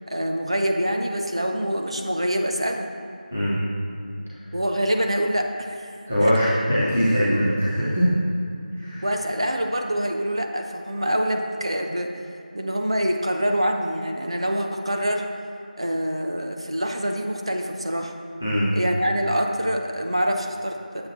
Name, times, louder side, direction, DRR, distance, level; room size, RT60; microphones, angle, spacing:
voice 1, 0.1-2.9 4.5-5.9 6.2-6.3 9.0-12.2 12.5-15.2 15.8-18.1 18.7-20.8, equal, 40° right, 2 dB, 0.8 m, -25 dB
voice 2, 6.1-8.1 8.8-9.1 18.4-18.7, equal, 10° right, -10 dB, 0.7 m, -21 dB
18.5 x 7.7 x 2.8 m, 2.6 s
figure-of-eight pair, 180°, 5 cm